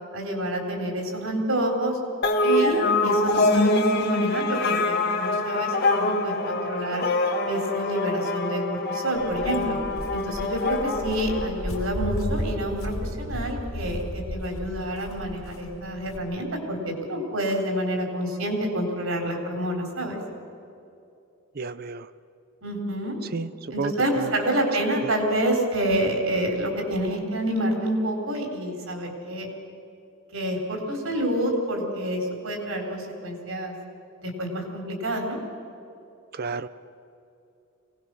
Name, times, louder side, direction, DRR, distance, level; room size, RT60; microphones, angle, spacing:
voice 1, 0.1-2.0 2.4-7.0 7.5-9.8 10.1-20.2 22.6-23.2 23.7-29.5 30.3-33.7 34.2-35.4, right 1 dB, 70° right, 3 dB, 3.7 m, -28 dB
sound 1, 2.2-12.0, left 2 dB, 50° left, 1.7 m, -25 dB
Walk footsteps, 9.1-16.2, left 1 dB, 85° left, 2.7 m, -34 dB
voice 2, 21.5-22.1 23.3-24.3 25.0-25.1 36.3-36.7, right 4 dB, 45° right, 13 dB, 0.5 m, -31 dB
23.5 x 18.5 x 6.2 m, 2.6 s
head